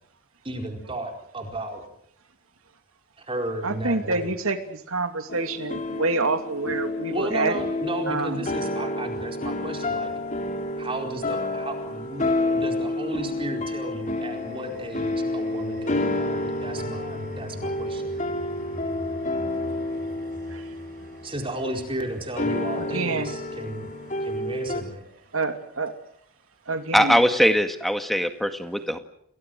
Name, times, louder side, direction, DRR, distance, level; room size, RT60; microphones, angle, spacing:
voice 1, 0.4-1.8 3.2-4.3 7.1-10.1 10.8-12.2 12.5-18.1 21.2-23.9 24.2-25.0, right 1 dB, 25° right, 3 dB, 4.5 m, -33 dB
voice 2, 3.6-7.6 8.1-8.4 20.5-20.7 22.8-23.3 25.3-25.9 26.7-27.2, right 3 dB, 80° right, 7 dB, 2.7 m, -27 dB
sound 1, 5.3-21.7 22.3-24.8, left 2 dB, 35° left, 3.2 m, -29 dB
sound 2, 10.7-12.2 13.8-26.1, right 1 dB, 45° right, 7.4 m, -45 dB
voice 3, 26.9-29.0, equal, ahead, 7 dB, 1.9 m, -21 dB
29.5 x 20.5 x 7.9 m, 0.71 s
head